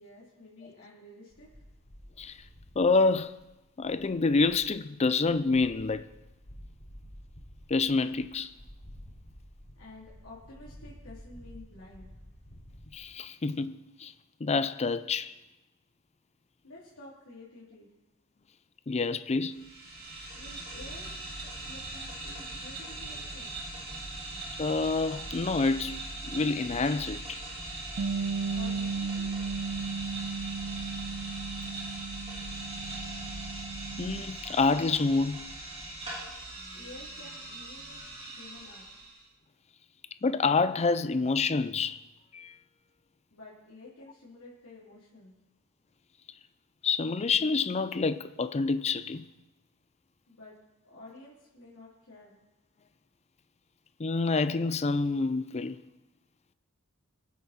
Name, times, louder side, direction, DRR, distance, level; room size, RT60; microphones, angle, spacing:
voice 1, 0.0-1.5 9.7-12.1 16.6-17.9 20.3-21.1 21.6-23.5 28.5-29.3 36.7-38.0 38.4-38.9 43.3-45.3 50.3-50.6 50.8-52.3, left 2 dB, 90° left, 3.1 m, -50 dB
sound 1, 1.3-4.8 5.2-12.9, equal, 55° left, 3.8 m, -51 dB
voice 2, 2.8-3.4 3.8-6.0 7.7-8.5 12.9-14.1 14.4-15.3 18.9-19.7 24.6-27.4 34.0-35.5 40.2-42.0 42.3-42.5 46.8-49.2 54.0-55.8, left 4 dB, 30° left, 0.5 m, -27 dB
sound 2, 19.5-39.2, right 2 dB, 25° right, 3.6 m, -40 dB
Bass guitar, 28.0-34.2, right 4 dB, 55° right, 0.5 m, -35 dB
22.5 x 8.3 x 4.3 m
head